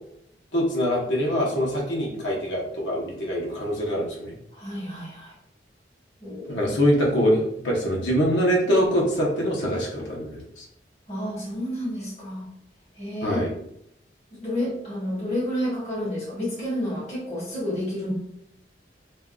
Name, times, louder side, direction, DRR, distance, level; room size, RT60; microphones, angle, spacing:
voice 1, 0.5-4.3 6.5-10.6 13.2-13.5, equal, 85° left, -2 dB, 0.8 m, -24 dB
voice 2, 4.5-5.3 6.2-6.7 11.1-12.5 13.0-13.4 14.3-18.1, left 1 dB, 35° left, -8 dB, 1.4 m, -30 dB
2.6 x 2.3 x 3.6 m, 0.75 s
head